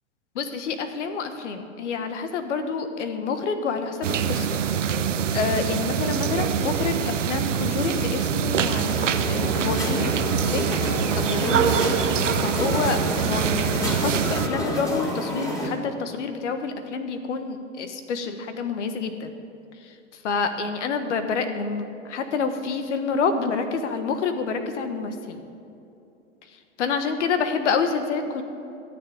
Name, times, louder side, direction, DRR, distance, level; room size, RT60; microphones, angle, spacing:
voice 1, 0.3-4.6 5.3-10.1 10.5-10.6 11.1-11.9 12.4-19.3 19.8-19.9 20.2-25.4 26.8-28.4, left 5 dB, 75° left, 8 dB, 1.3 m, -28 dB
sound 1, 4.0-14.5, right 8 dB, 90° right, 0.8 m, -24 dB
sound 2, 8.9-15.7, left 1 dB, 10° left, 2.8 m, -29 dB
14.0 x 7.2 x 8.6 m, 2.7 s
hypercardioid pair, 110°, 36 cm